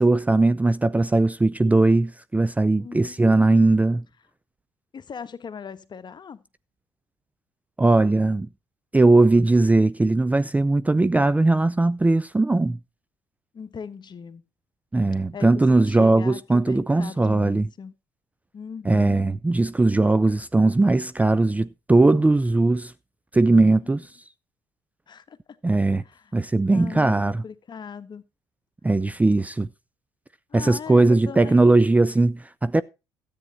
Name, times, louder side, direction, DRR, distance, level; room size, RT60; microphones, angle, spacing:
voice 1, 0.0-4.0 7.8-8.5 8.9-12.8 14.9-17.7 18.8-22.9 23.3-24.1 25.6-26.0 26.3-27.4 28.8-29.7 30.5-32.8, right 2 dB, 10° right, 0.5 m, -19 dB
voice 2, 2.8-3.9 4.9-6.4 13.5-14.4 15.3-17.9 18.5-19.3 23.6-24.0 25.1-25.4 26.0-26.3 26.7-28.2 30.5-31.8, left 6 dB, 35° left, 1.3 m, -39 dB
13.5 x 8.7 x 4.1 m
hypercardioid pair, 55°, 12 cm